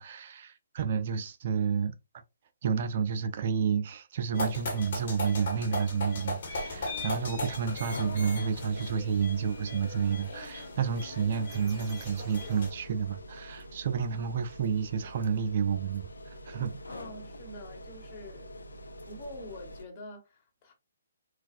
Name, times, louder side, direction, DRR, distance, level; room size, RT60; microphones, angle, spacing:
voice 1, 0.0-1.9 2.6-16.1 16.5-16.8, right 7 dB, 50° right, 0.4 m, -30 dB
sound 1, 4.3-12.7, left 2 dB, 55° left, 1.3 m, -38 dB
sound 2, 6.5-19.8, left 1 dB, 90° left, 0.7 m, -45 dB
sound 3, 11.5-13.6, right 3 dB, 20° right, 1.0 m, -55 dB
voice 2, 16.9-18.5 19.1-20.7, left 1 dB, 35° left, 1.2 m, -46 dB
4.0 x 2.4 x 2.4 m
hypercardioid pair, 140°, 0 cm